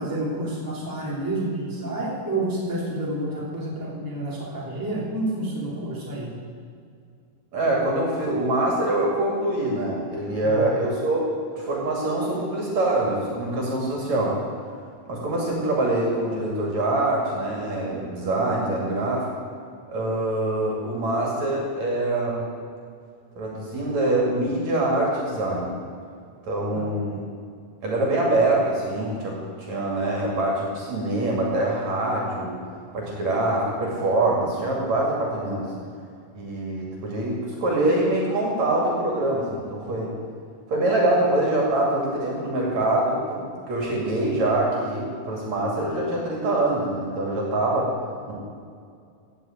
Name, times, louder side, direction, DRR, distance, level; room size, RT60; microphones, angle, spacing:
voice 1, 0.0-6.3 10.4-10.7 26.7-26.8, right 1 dB, 5° right, -6 dB, 2.8 m, -29 dB
voice 2, 7.5-11.3 11.6-14.4 15.1-19.3 19.9-22.5 23.4-25.8 26.4-27.2 27.8-32.6 32.9-35.7 36.3-40.1 40.7-47.9 48.3-48.4, right 2 dB, 55° right, -2 dB, 3.4 m, -24 dB
15.5 x 6.8 x 8.6 m, 2.3 s
omnidirectional pair, 4.1 m